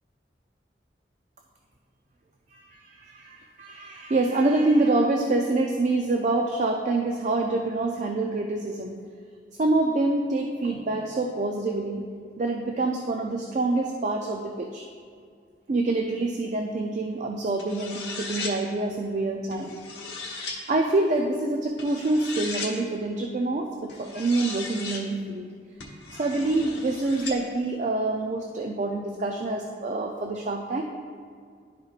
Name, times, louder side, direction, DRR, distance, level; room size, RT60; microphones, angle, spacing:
voice 1, 2.5-9.0 9.6-12.0 12.4-14.9 15.7-19.8 20.7-25.5 26.2-30.8, right 2 dB, 40° right, 3 dB, 0.3 m, -26 dB
sound 1, 17.6-18.6 19.5-20.6 21.8-22.7 23.9-25.0 25.8-27.4, left 3 dB, 70° left, 1.1 m, -36 dB
11.5 x 4.8 x 2.4 m, 2.2 s
head